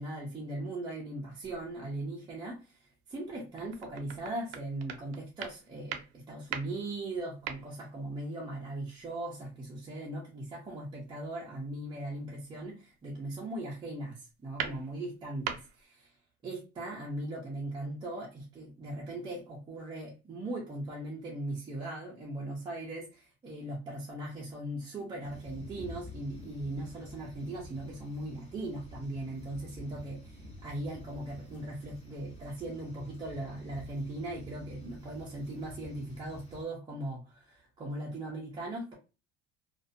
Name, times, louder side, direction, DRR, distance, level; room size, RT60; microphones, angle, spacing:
voice 1, 0.0-16.2 16.4-38.9, right 1 dB, 15° right, -4 dB, 0.4 m, -39 dB
sound 1, 1.4-1.9 2.4-2.5 3.1-8.2 8.6-9.1 11.1-11.2 12.3-12.6 13.0-13.6 14.0-15.9, right 8 dB, 85° right, 0.5 m, -42 dB
sound 2, 25.2-36.6, left 1 dB, 20° left, 1.1 m, -49 dB
2.4 x 2.2 x 2.4 m, 0.31 s
cardioid pair, 155°, 31 cm